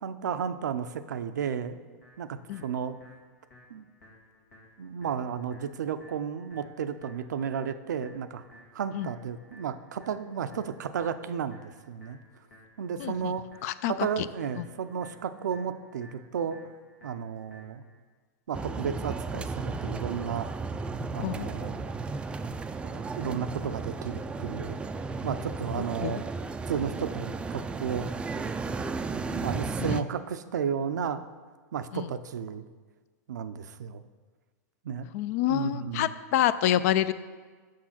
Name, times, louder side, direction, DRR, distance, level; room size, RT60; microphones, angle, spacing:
voice 1, 0.0-1.8 2.2-3.0 3.7-3.9 4.8-8.4 8.7-12.2 12.8-13.4 13.9-16.6 17.0-17.8 18.5-20.5 21.1-21.8 22.8-24.8 25.2-26.3 26.7-28.1 29.3-31.2 31.7-32.7 33.3-34.0 34.8-35.1 35.5-36.1, right 7 dB, 85° right, 11 dB, 0.5 m, -33 dB
sound 1, 2.0-18.0, equal, 90° left, 2.0 m, -56 dB
voice 2, 13.0-13.3 13.6-14.3 14.6-14.7 21.2-21.5 25.8-26.2 29.8-30.0 31.9-32.1 35.1-37.1, left 12 dB, 60° left, 15 dB, 0.4 m, -28 dB
sound 2, 18.5-30.0, right 4 dB, 10° right, 0.3 m, -34 dB
6.4 x 6.1 x 5.7 m, 1.5 s
hypercardioid pair, 115°, 9 cm